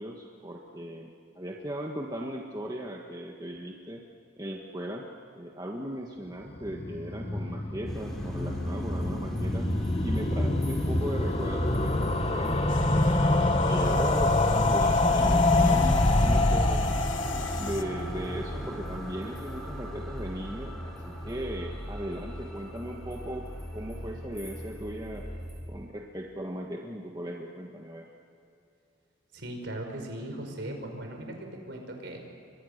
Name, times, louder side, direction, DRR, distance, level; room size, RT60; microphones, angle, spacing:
voice 1, 0.0-4.0 4.4-5.1 5.4-9.7 10.0-13.0 13.7-16.9 17.6-23.5 23.7-25.2 25.7-28.1, equal, 20° right, 0 dB, 1.6 m, -37 dB
sound 1, 6.5-19.5 19.8-19.9 20.1-20.2 20.4-20.5, left 2 dB, 30° left, 1.3 m, -26 dB
sound 2, 7.8-25.6, equal, ahead, 3.6 m, -37 dB
sound 3, 12.7-17.8, left 7 dB, 65° left, 1.5 m, -43 dB
voice 2, 29.3-32.2, right 1 dB, 55° right, 3 dB, 5.1 m, -38 dB
29.5 x 23.5 x 6.7 m, 2.6 s
head